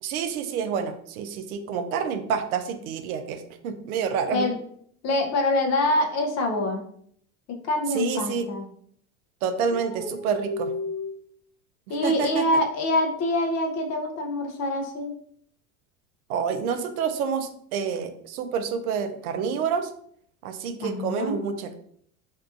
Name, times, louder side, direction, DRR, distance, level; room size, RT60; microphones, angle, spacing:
voice 1, 0.0-4.5 7.9-8.5 9.4-10.7 12.0-12.6 16.3-19.9 20.4-21.7, right 6 dB, 75° right, 8 dB, 0.5 m, -28 dB
voice 2, 5.0-6.9 7.5-8.7 9.7-11.1 11.9-15.1 20.8-21.4, left 1 dB, 40° left, 3 dB, 0.6 m, -26 dB
2.7 x 2.3 x 2.4 m, 0.64 s
hypercardioid pair, 85°, 43 cm